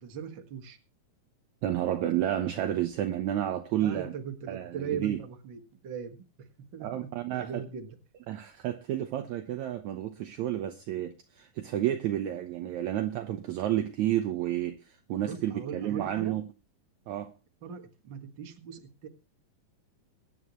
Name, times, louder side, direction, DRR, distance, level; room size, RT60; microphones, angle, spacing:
voice 1, 0.0-0.8 3.8-8.0 15.3-16.3 17.6-19.1, right 7 dB, 45° right, 1.9 m, -40 dB
voice 2, 1.6-4.1 4.5-5.2 6.8-7.6 8.3-16.4 17.1-17.3, right 12 dB, 70° right, 1.9 m, -31 dB
23.0 x 9.6 x 3.1 m
omnidirectional pair, 3.9 m